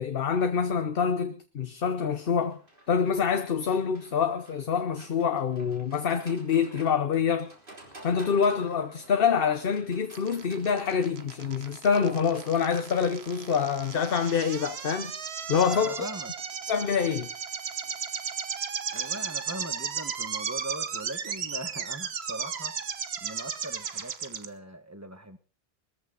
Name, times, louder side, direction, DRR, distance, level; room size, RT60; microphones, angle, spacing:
voice 1, 0.0-2.6 2.9-7.5 8.0-15.1 15.5-16.1 16.7-17.3, left 6 dB, 65° left, 1.1 m, -26 dB
Livestock farm animals working animals, 2.4-20.5, right 1 dB, 60° right, 3.9 m, -53 dB
sound 1, 10.1-24.5, right 6 dB, 90° right, 1.3 m, -35 dB
voice 2, 15.7-16.3 18.9-25.4, right 1 dB, 15° right, 1.4 m, -40 dB
20.5 x 14.0 x 4.0 m
omnidirectional pair, 1.0 m